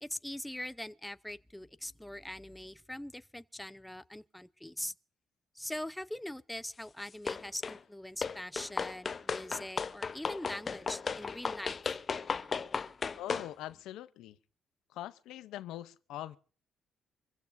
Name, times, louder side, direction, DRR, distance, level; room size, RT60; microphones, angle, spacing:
voice 1, 0.0-4.9 5.5-11.8, left 1 dB, 5° left, 0.7 m, -42 dB
sound 1, 7.3-7.8 8.2-13.5, left 5 dB, 40° left, 0.7 m, -35 dB
voice 2, 13.2-14.4 14.9-16.4, left 13 dB, 90° left, 0.7 m, -43 dB
25.5 x 15.5 x 2.6 m
cardioid pair, 90°, 0 cm